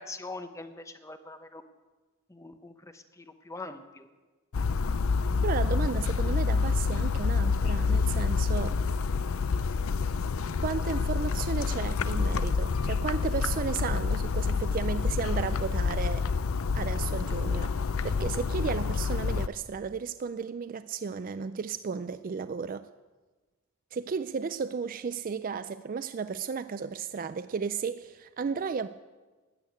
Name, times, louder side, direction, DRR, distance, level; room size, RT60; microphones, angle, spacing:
voice 1, 0.0-1.6 2.3-4.1, left 3 dB, 15° left, 9 dB, 0.7 m, -43 dB
sound 1, 4.5-19.5, left 4 dB, 75° left, 0.5 m, -28 dB
voice 2, 5.4-8.8 10.6-16.3 16.7-17.8 18.0-22.9 23.9-28.9, right 5 dB, 40° right, 12 dB, 0.3 m, -34 dB
13.0 x 8.5 x 9.4 m, 1.3 s
head